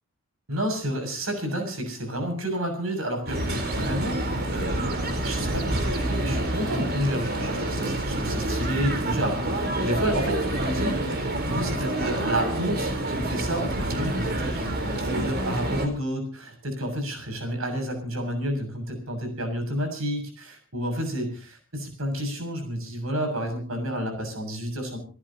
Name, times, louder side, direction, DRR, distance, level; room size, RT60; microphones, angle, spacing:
voice 1, 0.5-4.2 4.5-4.9 5.2-25.0, equal, 80° right, 5 dB, 7.2 m, -30 dB
sound 1, 3.3-15.9, right 1 dB, 50° right, 4.2 m, -27 dB
29.0 x 14.5 x 2.9 m, 0.38 s
head